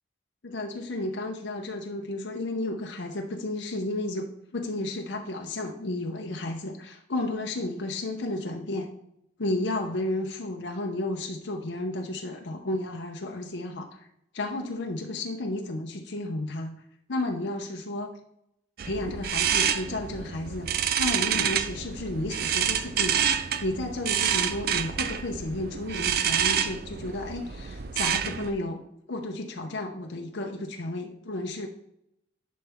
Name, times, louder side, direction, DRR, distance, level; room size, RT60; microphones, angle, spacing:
voice 1, 0.4-8.9 9.4-13.9 14.3-16.8 17.1-18.1 18.8-23.3 23.6-28.8 29.1-31.7, left 2 dB, 75° left, 2 dB, 0.8 m, -32 dB
sound 1, 18.8-28.5, right 8 dB, 55° right, 0.4 m, -28 dB
10.5 x 4.2 x 3.6 m, 0.79 s
head